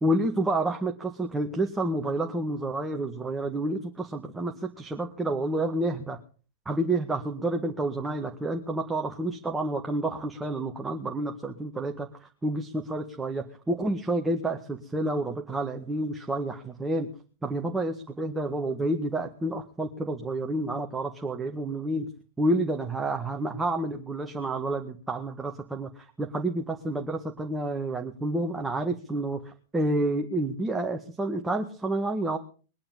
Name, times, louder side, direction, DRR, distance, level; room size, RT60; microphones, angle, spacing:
voice 1, 0.0-6.2 6.7-17.1 17.4-22.1 22.4-32.4, right 1 dB, 10° right, 3 dB, 1.9 m, -29 dB
22.0 x 9.8 x 5.6 m, 0.40 s
figure-of-eight pair, 100°, 0 cm